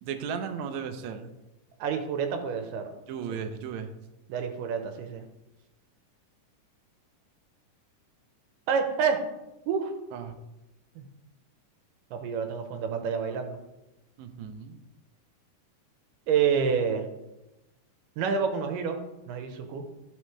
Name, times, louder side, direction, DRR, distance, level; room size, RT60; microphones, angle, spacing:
voice 1, 0.0-1.3 3.1-3.9 10.1-10.4 14.2-14.8, right 7 dB, 70° right, 6 dB, 1.9 m, -35 dB
voice 2, 1.8-2.9 3.3-3.4 4.3-5.2 8.7-9.2 9.7-9.9 11.0-11.1 12.1-13.6 16.3-17.0 18.2-19.0 19.3-19.8, right 6 dB, 90° right, 5 dB, 2.6 m, -28 dB
14.0 x 6.2 x 3.2 m, 0.99 s
omnidirectional pair, 3.7 m